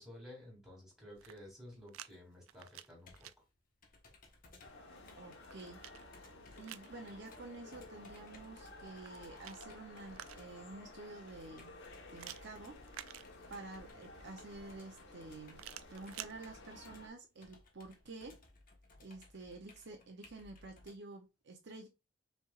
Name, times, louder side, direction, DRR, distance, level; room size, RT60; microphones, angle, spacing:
voice 1, 0.0-3.3, left 1 dB, ahead, 2.7 m, -53 dB
sound 1, 1.1-2.1 2.4-3.3 5.1-6.9 8.9-10.7 12.2-13.8 15.5-16.3, right 12 dB, 90° right, 0.4 m, -51 dB
Computer keyboard, 2.1-21.0, left 2 dB, 45° left, 1.1 m, -62 dB
sound 2, 4.6-17.1, left 2 dB, 60° left, 1.2 m, -54 dB
voice 2, 5.2-5.8 6.6-11.7 12.1-12.8 13.5-15.6 15.9-18.4 19.0-21.9, right 3 dB, 60° right, 0.8 m, -50 dB
5.5 x 3.5 x 2.4 m
head